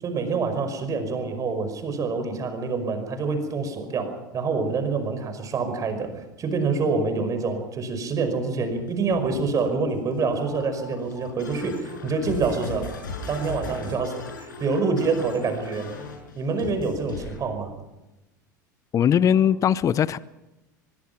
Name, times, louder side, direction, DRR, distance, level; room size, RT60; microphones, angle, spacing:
voice 1, 0.0-12.9 13.3-14.1 14.4-15.9 16.4-17.7, right 4 dB, 35° right, 5.4 m, -26 dB
sound 1, 8.6-17.4 19.1-19.5, left 3 dB, 75° left, 6.4 m, -39 dB
voice 2, 18.9-20.2, left 9 dB, 30° left, 0.7 m, -20 dB
22.5 x 22.5 x 6.0 m
figure-of-eight pair, 80°, 10 cm